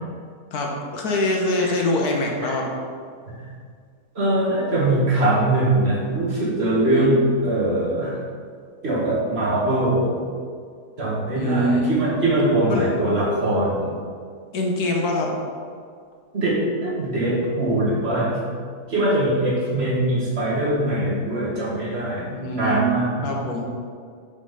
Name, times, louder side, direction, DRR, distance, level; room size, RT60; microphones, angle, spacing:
voice 1, 0.5-2.7 6.8-7.3 11.3-12.0 12.7-12.9 14.5-15.3 22.3-22.9 23.2-23.7, left 1 dB, 85° left, 0 dB, 1.6 m, -24 dB
voice 2, 4.2-8.2 8.8-10.2 11.0-13.9 16.3-18.4 18.9-23.4, right 1 dB, 45° right, -6 dB, 1.8 m, -22 dB
5.4 x 5.1 x 5.5 m, 2.1 s
omnidirectional pair, 1.6 m